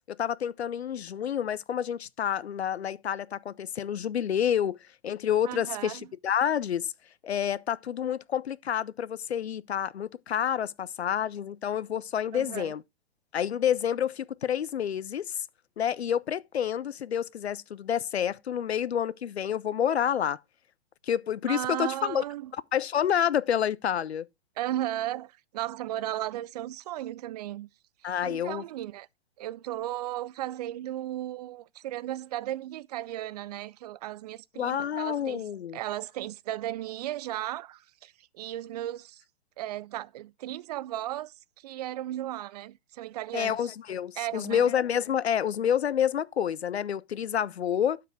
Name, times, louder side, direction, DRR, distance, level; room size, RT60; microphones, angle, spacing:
voice 1, 0.1-4.8 5.0-6.9 7.2-12.8 13.3-15.5 15.8-20.4 21.1-22.2 22.7-24.3 28.0-28.6 34.6-35.8 43.3-48.0, left 9 dB, 75° left, 0.6 m, -28 dB
voice 2, 5.4-6.1 12.3-12.7 21.5-22.5 24.6-27.7 28.0-29.1 29.4-35.4 35.7-39.2 39.6-43.7 44.2-44.7, right 14 dB, 40° right, 0.5 m, -35 dB
11.5 x 4.8 x 4.6 m
figure-of-eight pair, 115°, 33 cm